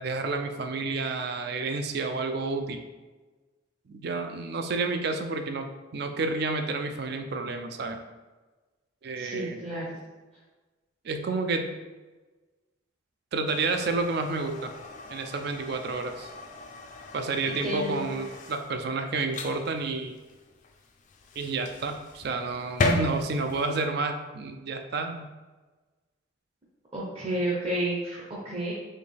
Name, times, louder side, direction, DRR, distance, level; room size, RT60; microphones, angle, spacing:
voice 1, 0.0-2.8 3.9-8.0 9.0-9.6 11.0-11.7 13.3-14.7 15.1-16.3 17.1-20.2 21.4-25.3, right 3 dB, 55° right, 7 dB, 0.4 m, -30 dB
voice 2, 9.2-10.0 17.6-18.1 26.9-28.7, right 1 dB, 30° right, -6 dB, 0.7 m, -31 dB
sound 1, 13.5-23.9, left 2 dB, 40° left, 0.4 m, -36 dB
4.2 x 3.0 x 3.4 m, 1.2 s
head